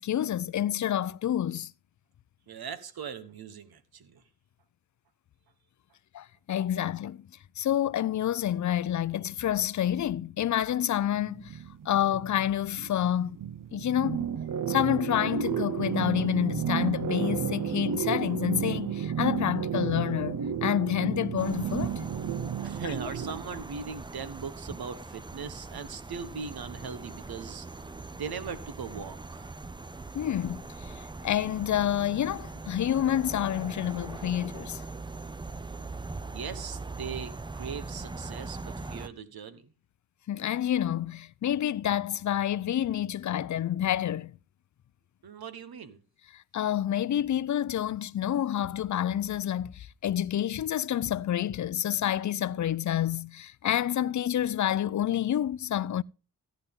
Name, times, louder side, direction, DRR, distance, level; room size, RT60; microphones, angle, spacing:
voice 1, 0.0-1.7 6.1-7.2 7.6-11.6 11.9-13.4 13.7-14.3 14.7-22.1 30.1-34.8 40.3-44.3 46.3-56.0, left 11 dB, 55° left, 0.4 m, -28 dB
voice 2, 2.5-4.2 22.6-27.7 28.1-29.5 36.3-39.7 45.2-46.0, right 6 dB, 80° right, 1.3 m, -39 dB
sound 1, 11.1-23.4, right 8 dB, 60° right, 0.7 m, -32 dB
sound 2, 21.4-39.1, right 3 dB, 15° right, 0.5 m, -41 dB
14.5 x 9.2 x 3.6 m
wide cardioid pair, 95°, 36 cm